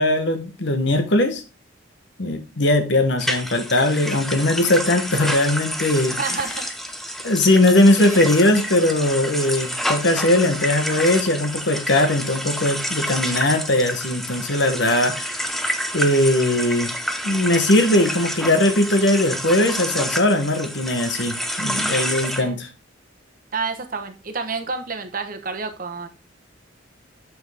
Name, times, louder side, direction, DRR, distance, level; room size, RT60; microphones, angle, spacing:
voice 1, 0.0-1.4 2.2-6.2 7.2-15.4 15.9-16.9 17.2-22.7, left 1 dB, 65° left, 1.2 m, -19 dB
sound 1, 3.2-22.4, equal, ahead, 0.7 m, -28 dB
voice 2, 6.2-6.7 8.0-8.2 22.4-22.6 23.5-26.1, right 4 dB, 45° right, 1.0 m, -29 dB
7.2 x 6.0 x 3.4 m
head